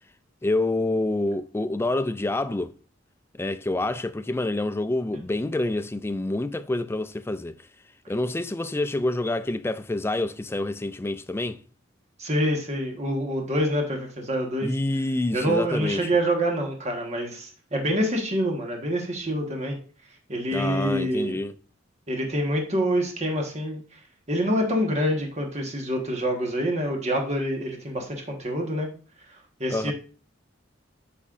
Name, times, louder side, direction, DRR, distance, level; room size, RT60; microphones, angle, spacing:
voice 1, 0.4-2.7 3.4-7.6 8.1-11.6 14.6-16.0 20.5-21.5 29.7-29.9, left 2 dB, 10° left, 0.3 m, -27 dB
voice 2, 12.2-14.7 15.3-19.8 20.3-21.4 22.1-24.0 24.3-28.9 29.3-29.9, equal, 35° right, 1.3 m, -26 dB
8.4 x 5.4 x 2.5 m
head